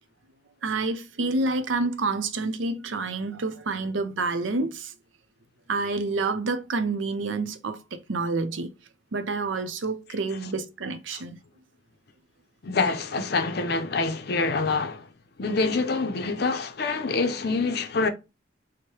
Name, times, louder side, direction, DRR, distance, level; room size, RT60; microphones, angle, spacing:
voice 1, 0.6-4.9 5.7-7.8 8.1-8.7 9.1-11.4, right 3 dB, 90° right, 0.6 m, -28 dB
voice 2, 12.6-15.1 15.4-18.1, left 3 dB, 55° left, 0.5 m, -26 dB
4.6 x 2.1 x 2.9 m
head